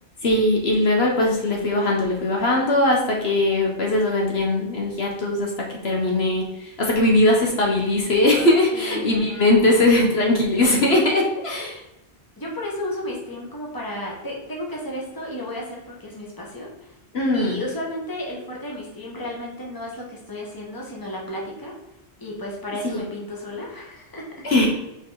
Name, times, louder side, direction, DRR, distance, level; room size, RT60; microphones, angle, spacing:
voice 1, 0.2-11.8 17.1-17.6 22.8-23.0 24.4-24.7, left 1 dB, 65° left, -1 dB, 1.5 m, -20 dB
voice 2, 8.7-9.9 12.4-17.0 17.3-21.7 22.2-24.7, left 1 dB, 20° left, -3 dB, 1.5 m, -33 dB
5.3 x 4.7 x 4.0 m, 0.91 s
omnidirectional pair, 1.1 m